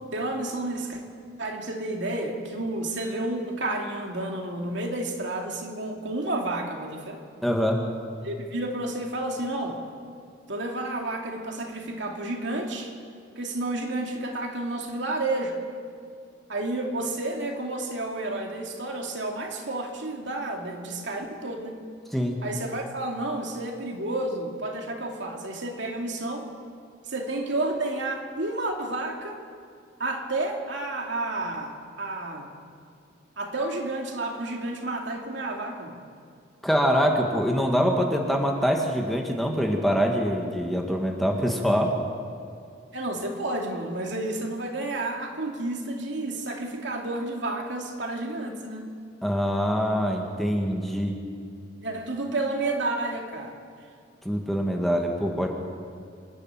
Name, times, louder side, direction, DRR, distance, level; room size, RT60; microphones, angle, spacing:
voice 1, 0.1-1.0 1.4-7.2 8.2-9.8 10.5-12.9 13.4-15.6 16.5-21.8 22.4-26.5 27.0-29.4 30.0-32.5 33.4-36.0 42.9-48.9 51.8-53.6, right 2 dB, 70° right, 1 dB, 2.6 m, -31 dB
voice 2, 7.4-7.8 22.1-22.4 36.6-41.9 49.2-51.1 54.3-55.5, equal, ahead, 1 dB, 1.8 m, -24 dB
26.0 x 12.0 x 9.0 m, 2.3 s
head